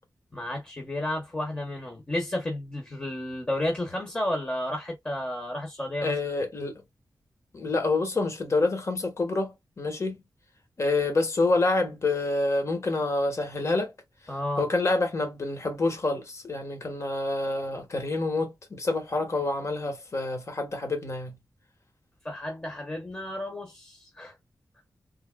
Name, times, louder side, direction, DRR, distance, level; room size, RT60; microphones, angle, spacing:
voice 1, 0.3-6.2 14.3-14.6 22.2-24.3, left 1 dB, 20° left, 0.9 m, -32 dB
voice 2, 6.0-6.8 7.5-10.1 10.8-13.9 14.6-21.3, left 2 dB, 45° left, 1.3 m, -27 dB
3.4 x 2.8 x 2.2 m
wide cardioid pair, 130°, 7 cm